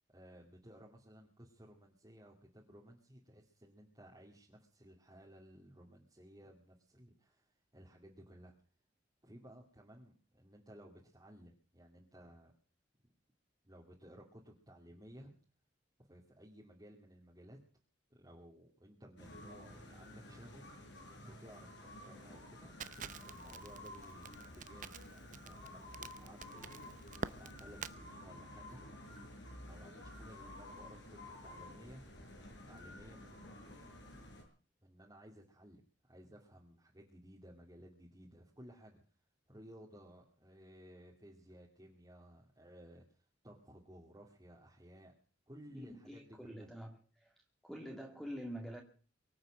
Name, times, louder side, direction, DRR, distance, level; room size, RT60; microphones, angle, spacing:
voice 1, 0.1-8.5 9.2-12.5 13.6-15.3 16.0-17.6 18.1-22.7 23.2-26.8 27.4-28.8 29.6-32.0 32.7-33.6 34.8-39.0 39.5-45.1 45.5-46.7, equal, 20° right, 2.4 m, -57 dB
sound 1, 19.2-34.4, left 1 dB, 65° left, 5.5 m, -52 dB
Crackle, 22.8-27.9, right 5 dB, 45° right, 0.7 m, -47 dB
voice 2, 45.7-47.3 47.6-48.8, equal, ahead, 2.1 m, -46 dB
23.5 x 7.9 x 7.6 m
head